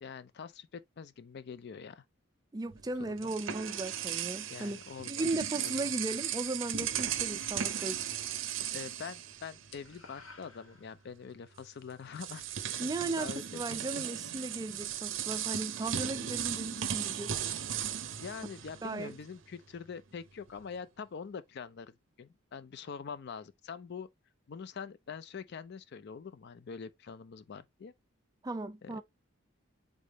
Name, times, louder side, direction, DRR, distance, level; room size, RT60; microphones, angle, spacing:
voice 1, 0.0-2.0 3.1-3.3 4.5-5.3 5.6-5.8 8.7-12.5 13.2-13.6 18.2-24.1 24.5-27.9 28.8-29.0, left 6 dB, 55° left, 0.4 m, -44 dB
voice 2, 2.5-4.8 5.0-8.1 12.8-17.4 18.8-19.1 28.4-29.0, right 2 dB, 20° right, 0.3 m, -36 dB
sound 1, 2.7-10.0 10.3-10.5 11.6-11.7 12.1-19.3, right 10 dB, 65° right, 0.6 m, -37 dB
sound 2, 7.3-8.3 8.6-9.0 9.2-11.3, left 4 dB, 70° left, 1.0 m, -55 dB
3.7 x 3.4 x 4.0 m
head